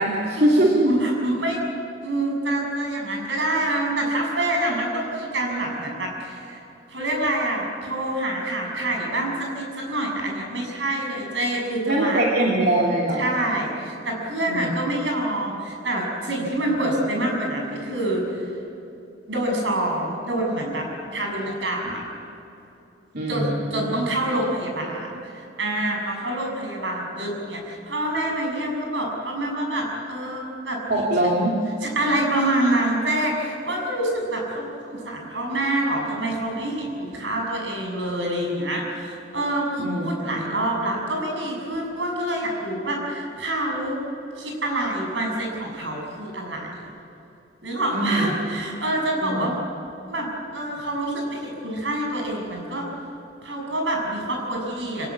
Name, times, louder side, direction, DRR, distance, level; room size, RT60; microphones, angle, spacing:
voice 1, 0.0-0.9 11.9-13.2 14.4-14.7 23.1-23.9 30.9-31.5 39.8-40.5 47.9-48.3 49.2-49.5, right 1 dB, 55° right, -3 dB, 2.9 m, -22 dB
voice 2, 0.9-1.6 2.0-12.2 13.2-18.5 19.3-22.0 23.3-31.3 31.8-44.0 44.4-46.9 47.6-49.6 50.1-52.9 53.4-55.1, right 1 dB, 80° right, 1 dB, 7.1 m, -26 dB
26.0 x 17.5 x 8.7 m, 2.8 s
head